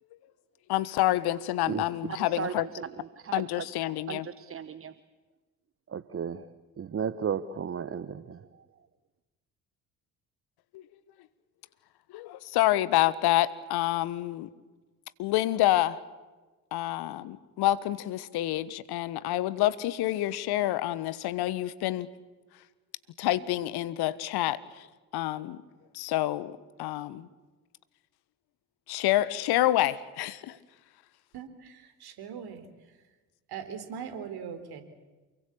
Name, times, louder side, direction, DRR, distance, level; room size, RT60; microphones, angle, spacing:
voice 1, 0.7-2.7 3.3-4.3 10.7-10.8 12.1-14.5 15.2-16.0 16.7-22.1 23.2-24.9 25.1-25.6 25.9-27.3 28.9-30.6, left 15 dB, 55° left, 17 dB, 1.4 m, -28 dB
voice 2, 2.4-3.5 4.1-4.9 5.9-6.5 6.8-8.5, right 7 dB, 30° right, 15 dB, 1.1 m, -34 dB
voice 3, 31.3-32.7 33.5-34.8, right 7 dB, 55° right, 10 dB, 3.9 m, -40 dB
28.5 x 22.5 x 8.6 m, 1.2 s
figure-of-eight pair, 50°, 46 cm